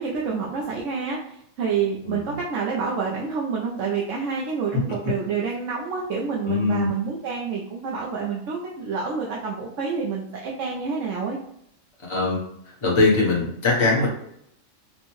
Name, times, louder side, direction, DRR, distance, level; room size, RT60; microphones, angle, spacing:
voice 1, 0.0-11.4, right 5 dB, 70° right, -3 dB, 0.9 m, -28 dB
voice 2, 2.0-2.4 4.9-5.0 6.4-6.9 12.0-12.4 12.8-14.1, left 3 dB, 25° left, -3 dB, 0.9 m, -21 dB
4.4 x 2.2 x 3.0 m, 0.73 s
omnidirectional pair, 1.4 m